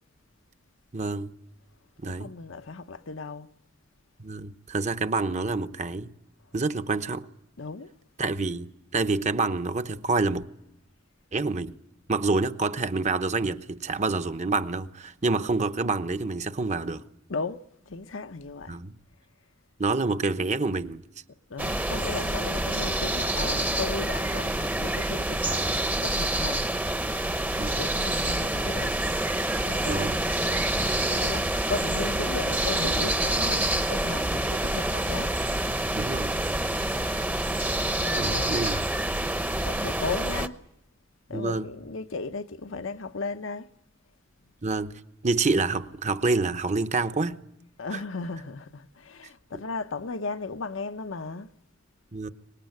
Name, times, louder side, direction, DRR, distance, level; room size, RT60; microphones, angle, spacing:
voice 1, 0.9-1.3 2.0-2.3 4.2-6.1 6.5-7.3 8.2-10.4 11.3-11.7 12.1-17.0 18.7-19.0 19.8-21.0 25.4-25.8 27.6-27.8 29.9-30.2 35.9-36.3 38.0-38.8 41.3-41.7 44.6-47.4 47.9-48.0 52.1-52.3, right 3 dB, 35° right, 0.9 m, -27 dB
voice 2, 2.0-3.5 7.6-7.9 17.3-18.8 21.5-25.6 26.0-26.7 27.6-29.0 29.6-30.7 31.1-35.3 36.7-37.0 38.0-38.5 39.6-40.6 41.3-43.7 47.8-51.5, left 4 dB, 75° left, 0.9 m, -36 dB
sound 1, 21.6-40.5, right 1 dB, 10° right, 0.8 m, -27 dB
24.5 x 20.0 x 9.5 m
head